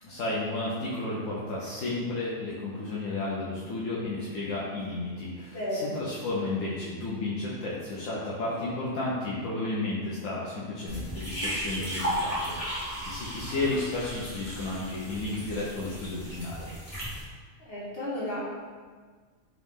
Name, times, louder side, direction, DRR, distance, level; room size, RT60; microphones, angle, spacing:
voice 1, 0.0-16.7, left 2 dB, 85° left, -7 dB, 1.1 m, -32 dB
voice 2, 5.5-5.9 11.2-11.5 17.6-18.5, left 1 dB, 55° left, -6 dB, 1.1 m, -33 dB
pouring coffee, 10.9-17.2, equal, 25° left, 1.5 m, -35 dB
3.7 x 3.0 x 3.6 m, 1.6 s
omnidirectional pair, 1.3 m